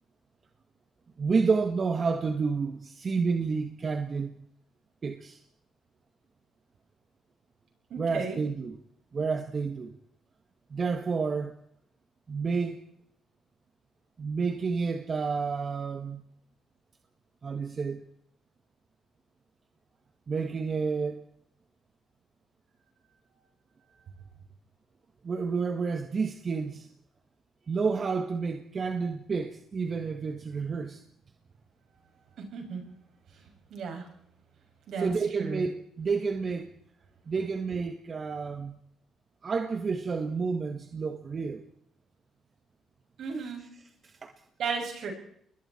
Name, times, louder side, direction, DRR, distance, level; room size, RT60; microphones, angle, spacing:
voice 1, 1.2-4.4 5.0-5.4 8.0-8.8 9.1-9.9 10.7-11.5 12.3-12.8 14.2-16.2 17.4-18.0 20.3-21.2 25.2-26.9 27.7-31.0 35.0-36.7 37.3-38.8 39.4-41.6 43.4-43.7 44.0-44.3, right 5 dB, 40° right, 1.8 m, -30 dB
voice 2, 7.9-8.4 32.5-32.8 33.7-34.0 34.9-35.1 35.4-35.6 43.2-43.6 44.6-45.1, right 5 dB, 70° right, 7.2 m, -34 dB
29.5 x 22.0 x 4.5 m
cardioid pair, 90°, 0 cm